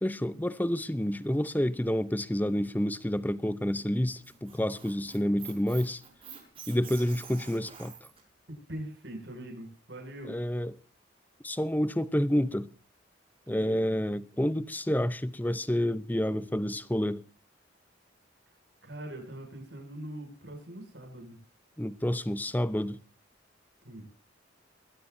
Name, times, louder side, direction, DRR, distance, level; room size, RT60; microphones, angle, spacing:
voice 1, 0.0-6.0 6.7-7.9 10.3-10.7 11.4-12.7 13.5-17.2 21.8-23.0, equal, 10° left, 0.8 m, -29 dB
Squeak, 4.0-8.2, right 7 dB, 30° right, 6.6 m, -47 dB
voice 2, 8.5-10.4 13.5-13.8 18.8-21.4 23.8-24.0, right 1 dB, 70° right, 7.4 m, -42 dB
21.5 x 17.0 x 2.7 m
head